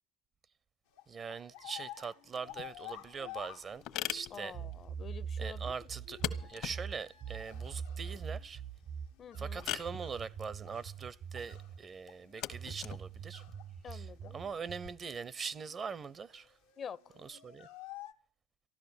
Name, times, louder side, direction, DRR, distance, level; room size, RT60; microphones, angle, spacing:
sound 1, 0.9-4.4 6.0-8.5 9.1-11.0 11.3-13.7 14.0-14.6 15.0-15.1 15.3-15.9 16.3-18.1, left 13 dB, 90° left, 1.1 m, -52 dB
voice 1, 1.1-3.8 4.1-4.5 5.4-6.2 6.5-8.6 9.4-13.4 13.9-16.5 17.2-17.7, right 5 dB, 40° right, 0.8 m, -42 dB
sound 2, 2.5-14.9, left 11 dB, 70° left, 1.2 m, -44 dB
voice 2, 4.3-5.7 9.2-9.7 13.8-14.4 16.8-17.2, left 7 dB, 50° left, 0.7 m, -47 dB
sound 3, 4.5-11.8 12.5-15.0, right 7 dB, 70° right, 1.5 m, -43 dB
14.5 x 12.0 x 7.1 m
hypercardioid pair, 70°, 0 cm